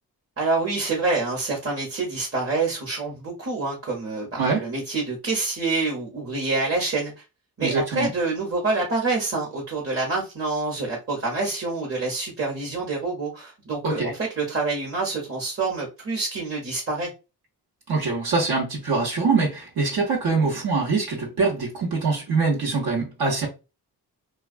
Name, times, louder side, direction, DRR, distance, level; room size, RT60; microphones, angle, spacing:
voice 1, 0.4-7.1 7.6-17.1, right 3 dB, 35° right, 1.0 m, -27 dB
voice 2, 7.6-8.1 13.8-14.1 17.9-23.5, right 4 dB, 65° right, 1.0 m, -24 dB
2.3 x 2.2 x 2.4 m
cardioid pair, 60°, 40 cm